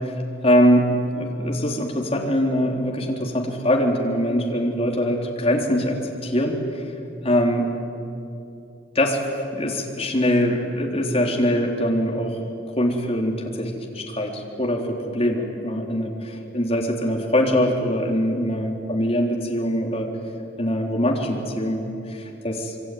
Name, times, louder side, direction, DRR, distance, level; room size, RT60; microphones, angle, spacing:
voice 1, 0.4-6.6 7.2-7.7 9.0-9.2 9.5-12.4 12.8-20.1 20.6-22.7, equal, 30° left, 0 dB, 3.7 m, -23 dB
26.0 x 23.5 x 9.4 m, 2.7 s
head